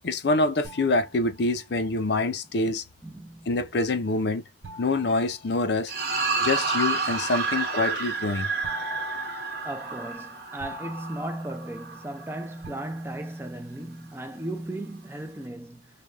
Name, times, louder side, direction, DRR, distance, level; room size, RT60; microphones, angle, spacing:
voice 1, 0.0-2.8 3.5-4.4 4.8-5.9 6.4-8.5, left 2 dB, 60° left, 0.6 m, -25 dB
sound 1, 0.6-1.9 4.6-6.3 8.6-12.2 12.6-13.6, left 2 dB, 80° right, 0.5 m, -44 dB
voice 2, 3.0-3.6 9.6-16.0, right 1 dB, 10° right, 0.4 m, -36 dB
sound 2, 5.9-12.4, right 4 dB, 55° right, 0.9 m, -30 dB
3.2 x 2.3 x 2.4 m
head